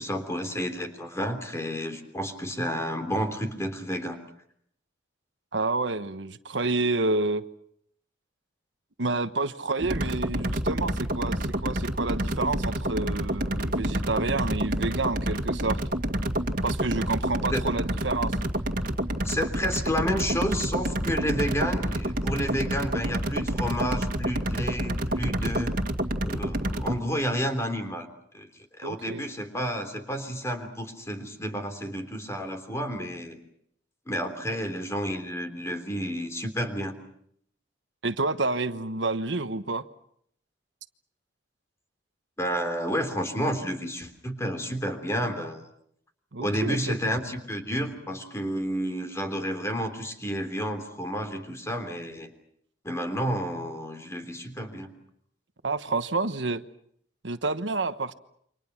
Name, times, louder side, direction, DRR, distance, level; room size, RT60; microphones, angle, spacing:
voice 1, 0.0-4.2 17.5-17.6 19.2-25.7 26.2-28.1 28.3-28.5 28.8-33.4 34.1-36.9 42.4-45.7 46.4-52.3 52.8-54.9, equal, 15° left, 3.4 m, -30 dB
voice 2, 5.5-7.4 9.0-15.8 16.6-18.3 28.8-29.2 38.0-39.8 46.3-47.0 55.6-56.6 57.2-58.1, right 3 dB, 80° right, 1.2 m, -29 dB
sound 1, 9.8-27.0, right 1 dB, 50° right, 2.4 m, -28 dB
29.0 x 25.5 x 6.0 m
head